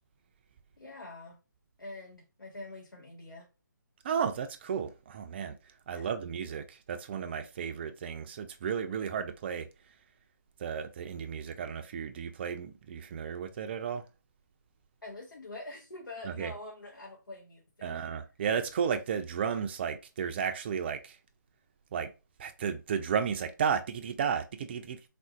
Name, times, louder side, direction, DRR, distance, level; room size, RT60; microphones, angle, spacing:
voice 1, 0.8-1.4 1.8-3.5 5.9-6.2 15.0-18.2, left 2 dB, 90° left, 0.8 m, -45 dB
voice 2, 4.0-5.6 5.9-9.7 10.6-14.0 16.2-16.5 17.8-21.2 21.9-22.1 22.4-25.1, right 7 dB, 30° right, 0.4 m, -33 dB
3.5 x 2.5 x 2.4 m
figure-of-eight pair, 145°, 11 cm